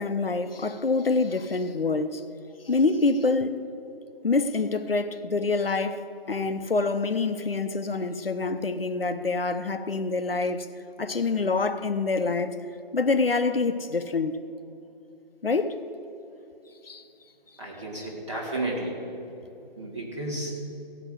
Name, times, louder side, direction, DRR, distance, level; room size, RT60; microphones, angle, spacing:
voice 1, 0.0-2.2 2.6-3.6 4.2-10.7 11.0-12.6 12.9-14.4 15.4-15.8 16.8-17.0, left 3 dB, 70° left, 0.8 m, -26 dB
voice 2, 17.6-19.0 19.6-20.5, right 1 dB, 30° right, 2.9 m, -32 dB
16.5 x 6.1 x 8.3 m
figure-of-eight pair, 180°, 30 cm